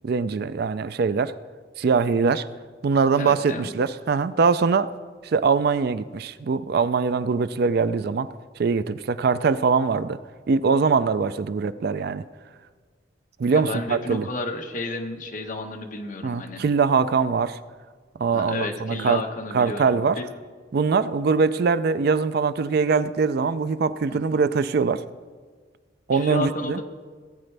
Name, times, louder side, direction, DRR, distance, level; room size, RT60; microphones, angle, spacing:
voice 1, 0.0-1.4 1.8-2.5 2.8-4.9 5.2-8.3 8.6-10.2 10.5-12.2 13.4-14.3 16.2-17.6 18.2-19.2 19.5-20.2 20.7-25.0 26.1-26.8, right 5 dB, 55° right, 14 dB, 0.4 m, -22 dB
voice 2, 3.1-3.7 13.5-16.6 18.3-20.3 24.1-24.4 26.1-26.8, left 2 dB, 45° left, 3 dB, 1.2 m, -32 dB
18.5 x 9.2 x 3.4 m, 1.5 s
head